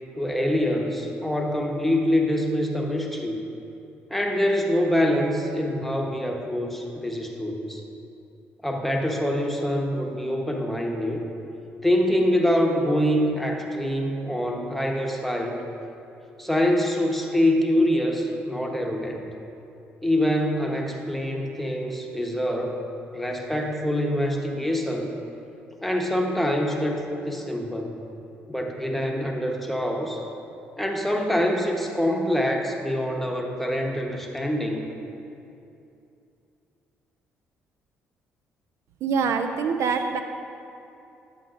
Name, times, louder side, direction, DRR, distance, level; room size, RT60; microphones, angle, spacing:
voice 1, 0.1-3.4 4.1-7.8 8.6-11.2 11.8-15.6 16.4-19.3 20.0-22.8 23.1-25.1 25.8-28.0 28.5-30.2 30.8-34.9, equal, 5° left, 1 dB, 1.0 m, -25 dB
voice 2, 39.0-40.2, right 5 dB, 65° right, 7 dB, 0.4 m, -24 dB
8.8 x 7.4 x 2.5 m, 2.7 s
hypercardioid pair, 55°, 5 cm